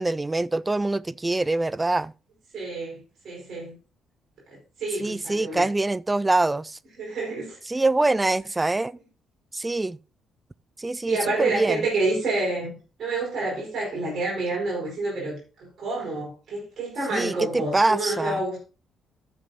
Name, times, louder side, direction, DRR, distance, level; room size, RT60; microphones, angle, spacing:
voice 1, 0.0-2.1 5.0-6.8 7.7-9.0 9.5-10.0 10.8-11.8 17.1-18.4, right 2 dB, 20° right, 0.4 m, -24 dB
voice 2, 2.5-3.8 4.5-5.6 7.0-7.6 11.1-18.6, right 2 dB, 50° right, 5.1 m, -29 dB
13.5 x 6.7 x 2.9 m
figure-of-eight pair, 40°, 0 cm